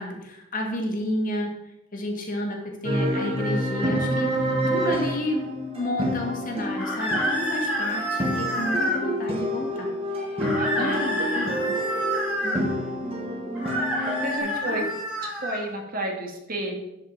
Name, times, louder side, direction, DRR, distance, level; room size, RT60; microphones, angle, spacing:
voice 1, 0.0-1.5 1.9-10.5 10.8-11.5 12.4-12.7 14.4-14.9, left 1 dB, 45° left, 1 dB, 1.8 m, -31 dB
sound 1, 2.8-14.4, equal, 30° right, 1.7 m, -28 dB
sound 2, 6.8-9.0 10.4-12.6 13.5-15.6, equal, 5° right, 2.3 m, -28 dB
voice 2, 10.4-11.0 14.2-14.8 15.2-16.7, right 1 dB, 50° right, 1 dB, 1.8 m, -31 dB
11.0 x 5.0 x 4.7 m, 0.90 s
head